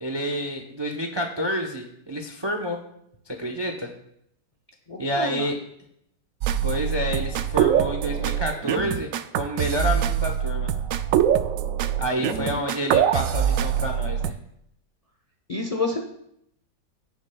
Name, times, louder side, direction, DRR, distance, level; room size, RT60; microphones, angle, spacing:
voice 1, 0.0-2.8 3.3-3.9 5.0-5.6 6.6-10.7 12.0-14.3, equal, 35° right, 3 dB, 0.4 m, -29 dB
voice 2, 4.9-5.5 12.2-12.5 15.5-16.0, left 2 dB, 30° left, 2 dB, 0.6 m, -29 dB
sound 1, 6.4-14.3, right 9 dB, 85° right, 0.7 m, -24 dB
16.0 x 6.7 x 2.3 m, 0.74 s
omnidirectional pair, 2.0 m